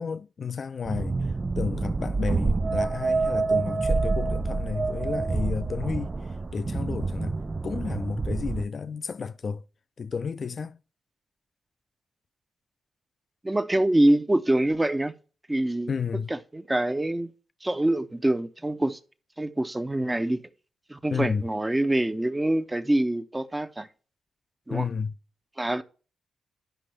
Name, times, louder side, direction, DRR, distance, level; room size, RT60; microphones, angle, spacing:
voice 1, 0.0-6.1 6.5-7.4 7.6-9.6 10.0-10.8 15.9-16.3 21.1-21.5 24.7-25.1, left 5 dB, 55° left, 0.5 m, -32 dB
sound 1, 0.9-8.6, right 3 dB, 35° right, 0.3 m, -27 dB
voice 2, 13.4-15.1 15.5-15.9 16.3-17.3 17.6-19.0 19.4-20.4 20.9-23.9 24.7-24.9 25.6-25.8, right 1 dB, 20° right, 0.8 m, -25 dB
11.5 x 5.3 x 3.1 m
hypercardioid pair, 45°, 0 cm